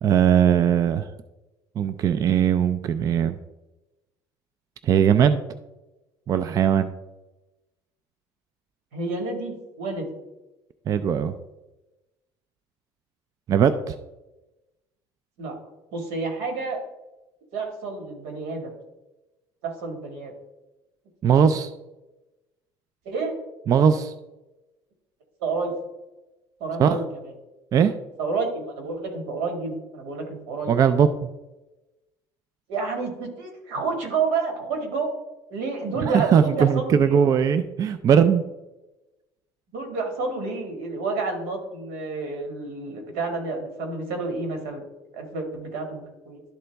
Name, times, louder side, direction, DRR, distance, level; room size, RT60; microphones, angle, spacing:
voice 1, 0.0-1.1 1.8-3.4 4.8-5.4 6.3-6.9 10.9-11.3 13.5-14.0 21.2-21.7 23.7-24.1 26.8-27.0 27.7-27.9 30.7-31.3 36.0-38.4, right 8 dB, 40° right, 11 dB, 0.4 m, -19 dB
voice 2, 8.9-10.1 15.4-15.6 15.9-16.8 17.5-18.7 19.6-20.3 23.1-23.3 25.4-25.7 26.6-27.0 28.2-30.8 32.7-35.1 35.5-37.0 39.7-44.8 45.1-46.4, right 4 dB, 85° right, 4 dB, 1.9 m, -29 dB
11.5 x 3.9 x 3.4 m, 1.0 s
cardioid pair, 125°, 10 cm